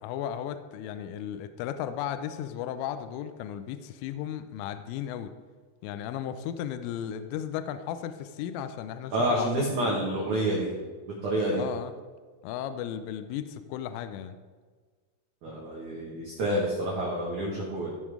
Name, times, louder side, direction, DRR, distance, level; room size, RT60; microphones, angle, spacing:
voice 1, 0.0-5.3 5.8-9.9 11.5-11.9 12.4-14.4, left 10 dB, 85° left, 10 dB, 3.0 m, -35 dB
voice 2, 9.1-10.7 11.2-11.6 15.4-17.9, right 1 dB, 75° right, -4 dB, 1.7 m, -28 dB
15.0 x 5.5 x 4.9 m, 1.5 s
omnidirectional pair, 5.9 m